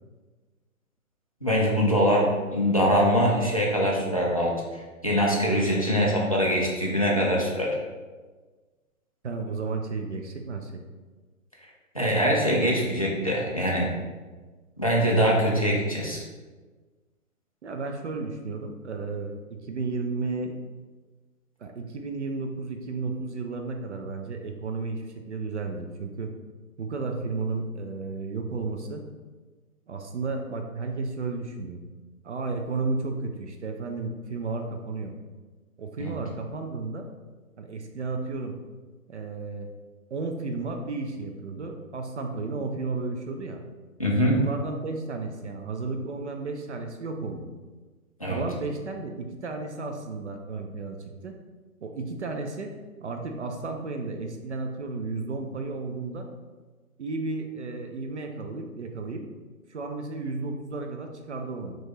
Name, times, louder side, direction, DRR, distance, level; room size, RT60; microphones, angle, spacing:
voice 1, 1.4-7.8 11.9-13.9 14.8-16.2 36.0-36.1 44.0-44.4 48.2-48.4, equal, 25° left, -3 dB, 0.3 m, -23 dB
voice 2, 9.2-10.7 17.6-20.5 21.6-26.3 26.8-29.0 29.9-31.8 32.2-35.1 35.8-37.1 37.6-38.6 39.1-39.7 40.1-43.6 44.2-47.5 48.2-51.0 51.2-51.3 51.8-52.7 53.0-56.3 57.0-59.2 59.7-61.8, right 3 dB, 55° right, 4 dB, 0.5 m, -33 dB
4.3 x 3.0 x 3.0 m, 1.3 s
figure-of-eight pair, 135°, 44 cm